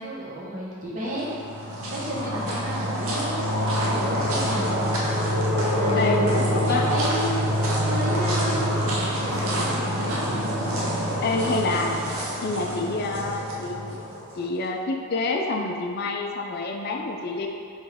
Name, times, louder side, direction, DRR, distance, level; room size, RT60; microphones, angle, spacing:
voice 1, 0.0-1.4 1.9-3.4 3.8-4.8 5.7-6.3 6.7-7.5 7.8-10.4, equal, 40° right, -6 dB, 0.9 m, -32 dB
sound 1, 1.1-14.4, equal, 85° right, 0.7 m, -26 dB
voice 2, 6.0-6.9 11.2-12.1 12.4-14.0 14.4-17.5, left 3 dB, 50° left, 1 dB, 0.4 m, -27 dB
4.3 x 3.2 x 3.4 m, 2.5 s
head